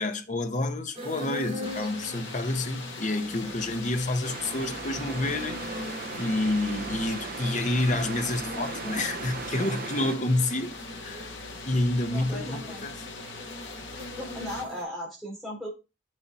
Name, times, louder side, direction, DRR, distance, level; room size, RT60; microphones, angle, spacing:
voice 1, 0.0-5.7 6.1-11.3 11.7-12.9, left 2 dB, 35° left, 1.0 m, -29 dB
sound 1, 0.9-14.8, left 1 dB, 30° right, 4.2 m, -42 dB
sound 2, 1.6-14.6, left 4 dB, 60° left, 1.5 m, -42 dB
sound 3, 4.2-10.1, right 5 dB, 45° right, 0.5 m, -38 dB
voice 2, 12.1-12.8 14.2-15.7, equal, ahead, 3.3 m, -37 dB
6.8 x 6.5 x 4.2 m
head